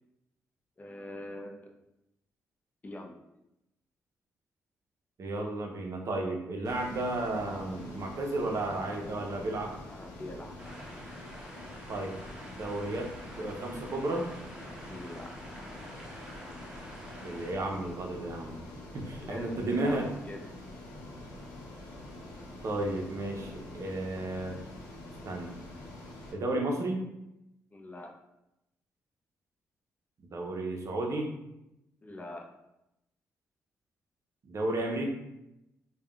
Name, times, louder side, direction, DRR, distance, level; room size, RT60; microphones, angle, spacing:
voice 1, 0.8-1.6 2.8-3.2 9.9-10.7 14.9-15.3 19.2-20.4 27.7-28.1 32.0-32.5, left 1 dB, 25° left, 1 dB, 0.5 m, -43 dB
voice 2, 5.2-9.8 11.9-12.2 12.5-14.3 17.2-18.6 18.9-20.1 22.6-24.6 25.2-25.6 26.3-27.1 30.3-31.3 34.5-35.1, right 2 dB, 55° right, 2 dB, 0.6 m, -33 dB
Ocean, 6.6-26.3, left 1 dB, 85° left, 0.6 m, -46 dB
sound 1, 10.6-17.5, equal, 10° right, 0.8 m, -48 dB
3.4 x 2.2 x 2.3 m, 0.88 s
supercardioid pair, 55°, 6 cm